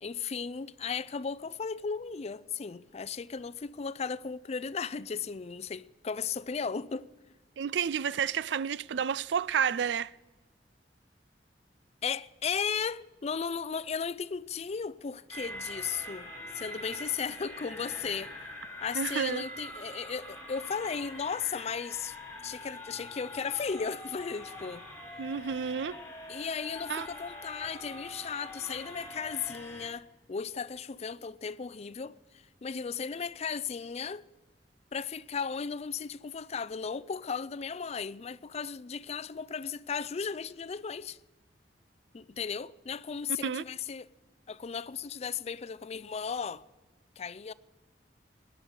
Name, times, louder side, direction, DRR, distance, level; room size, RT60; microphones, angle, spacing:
voice 1, 0.0-7.1 12.0-18.3 18.8-22.2 22.4-24.9 26.3-32.2 32.6-34.3 34.9-41.2 42.1-44.1 44.5-46.6 47.2-47.5, left 6 dB, 35° left, 0.4 m, -35 dB
voice 2, 7.6-10.1 18.9-19.5 25.2-26.0 26.9-27.1 43.4-43.6, right 7 dB, 75° right, 0.4 m, -30 dB
sound 1, 15.3-29.9, equal, 15° left, 4.3 m, -44 dB
19.0 x 10.5 x 6.6 m
head